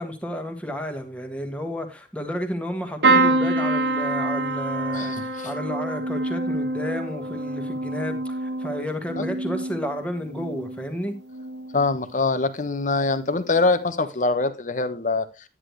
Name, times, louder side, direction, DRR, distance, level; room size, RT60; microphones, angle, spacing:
voice 1, 0.0-11.2, equal, 5° left, 1.6 m, -31 dB
sound 1, 3.0-10.9 11.3-11.9 13.1-13.3 13.5-13.6, right 2 dB, 85° right, 1.5 m, -26 dB
voice 2, 4.9-5.5 9.2-9.3 11.7-15.3, left 3 dB, 45° left, 1.0 m, -24 dB
10.0 x 9.9 x 3.2 m
head